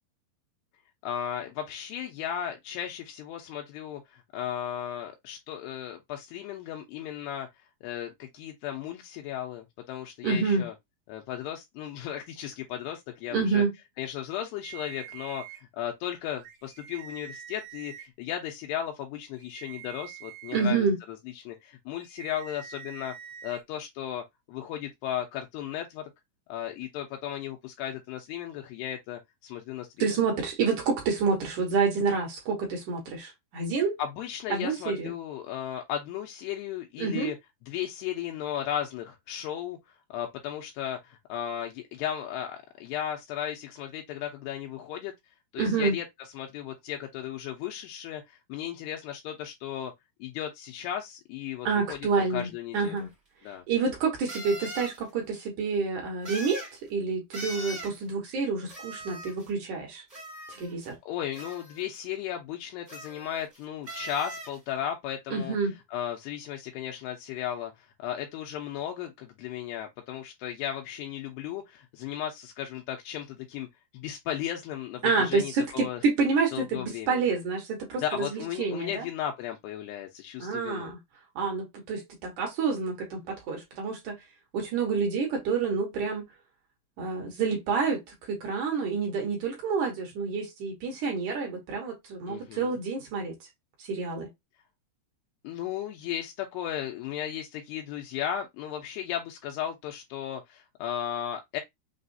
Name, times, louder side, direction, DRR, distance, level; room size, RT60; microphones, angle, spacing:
voice 1, 1.0-7.5 7.8-10.7 11.1-13.6 14.0-23.1 23.4-26.1 26.5-30.2 34.0-37.4 37.7-39.8 40.1-45.1 45.5-46.0 46.3-49.9 50.2-53.1 53.4-53.6 61.1-65.6 65.9-73.7 73.9-76.0 76.5-77.4 78.0-80.9 92.3-92.7 95.4-101.6, left 10 dB, 85° left, 2.7 m, -35 dB
voice 2, 10.2-10.7 13.3-13.7 20.5-21.0 30.0-34.0 34.5-35.1 37.0-37.3 45.6-46.0 51.7-53.1 53.7-56.6 56.9-60.0 60.5-61.0 65.3-65.8 75.0-79.1 80.4-81.0 81.4-84.1 84.5-86.2 87.0-88.0 88.3-93.3 93.8-94.3, right 4 dB, 65° right, 2.0 m, -28 dB
sound 1, 14.6-15.6 16.4-18.0 19.3-20.6 22.0-23.6, right 9 dB, 90° right, 1.6 m, -45 dB
sound 2, 53.0-53.1 54.3-55.0 56.2-56.8 57.3-58.0 58.7-59.5 60.1-60.9 61.3-62.0 62.9-63.6 63.9-64.6, right 1 dB, 35° right, 0.7 m, -40 dB
6.1 x 2.4 x 2.6 m
omnidirectional pair, 4.8 m